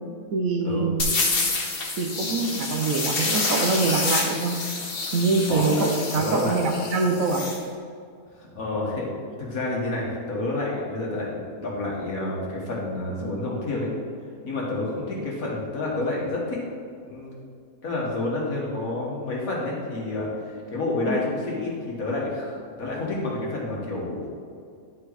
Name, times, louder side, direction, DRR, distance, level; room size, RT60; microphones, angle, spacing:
voice 1, 0.3-1.0 2.0-4.6 5.1-7.4 21.1-21.2, right 3 dB, 65° right, 3 dB, 1.1 m, -24 dB
sound 1, 1.0-7.6, left 3 dB, 40° left, 1.2 m, -28 dB
voice 2, 5.4-5.9 6.2-6.6 8.4-9.1 9.4-13.9 14.4-16.6 17.1-17.3 17.8-24.3, left 2 dB, 60° left, -4 dB, 2.0 m, -29 dB
10.5 x 4.7 x 4.1 m, 2.4 s
omnidirectional pair, 1.6 m